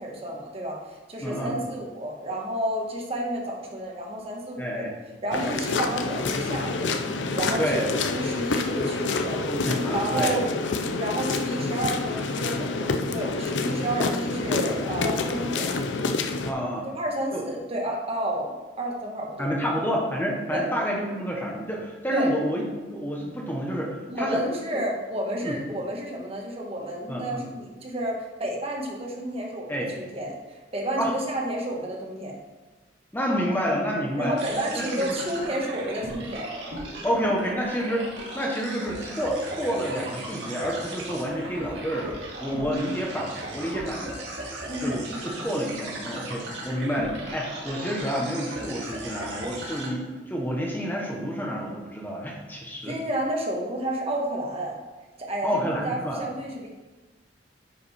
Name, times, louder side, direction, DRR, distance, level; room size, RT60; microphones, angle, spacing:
voice 1, 0.0-4.9 5.2-9.5 9.9-10.5 11.0-15.7 16.9-19.9 20.5-20.6 22.1-22.3 24.1-32.4 34.2-36.5 44.7-45.5 52.9-54.8 55.2-56.7, right 1 dB, 35° right, -1 dB, 1.4 m, -31 dB
voice 2, 1.2-1.6 4.6-4.9 7.6-7.9 9.4-10.4 16.4-16.9 17.3-17.4 19.4-22.6 22.9-24.4 25.4-25.6 27.1-27.4 29.7-29.9 31.0-31.1 33.1-35.0 37.0-44.2 44.8-52.9 55.4-56.2, equal, 10° left, -2 dB, 1.2 m, -29 dB
sound 1, 5.3-16.5, left 3 dB, 85° left, 0.6 m, -28 dB
sound 2, 34.4-49.9, right 2 dB, 80° right, 2.0 m, -37 dB
9.4 x 5.2 x 4.3 m, 1.2 s
head